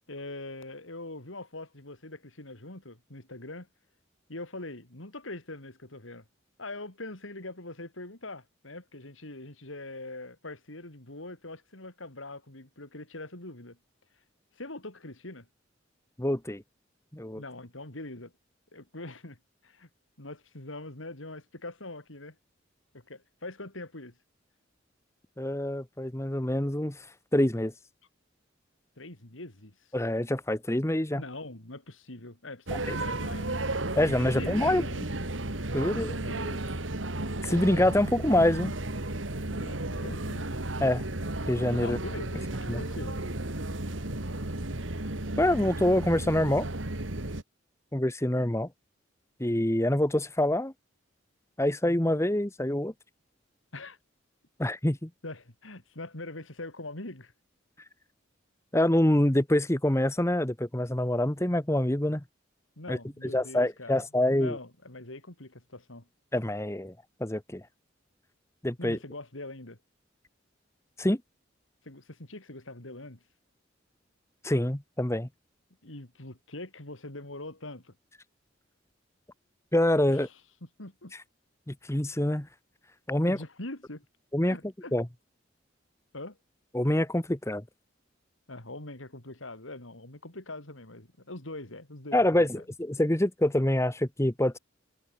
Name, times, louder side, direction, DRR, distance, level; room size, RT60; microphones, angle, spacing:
voice 1, 0.1-3.7 4.3-6.2 6.6-13.8 14.6-15.5 17.3-18.3 18.7-19.9 20.2-22.4 22.9-24.1 29.0-29.8 31.1-33.6 34.2-35.0 35.8-36.8 39.5-40.5 41.8-43.2 53.7-54.0 55.2-57.3 62.8-64.1 64.3-66.1 68.8-69.8 71.8-73.2 75.8-78.0 80.1-80.3 80.8-81.1 83.2-84.0 84.4-85.0 86.1-86.4 88.5-92.2, left 2 dB, 90° left, 4.1 m, -42 dB
voice 2, 16.2-16.6 17.1-17.4 25.4-27.1 27.3-27.7 29.9-31.2 32.9-33.0 33.9-34.9 35.7-36.1 37.4-38.7 40.8-41.0 41.5-42.0 42.7-42.8 45.4-46.7 47.9-48.7 49.4-50.7 51.6-52.9 54.6-55.1 58.7-62.2 62.9-63.0 63.3-64.6 66.3-66.9 67.2-67.6 68.6-69.0 71.0-71.2 74.4-75.3 79.7-80.3 81.7-82.5 83.1-83.4 84.3-84.6 84.9-85.1 86.7-87.6 92.1-94.6, left 1 dB, 15° left, 1.2 m, -26 dB
sound 1, 32.7-47.4, right 2 dB, 80° right, 2.5 m, -33 dB
head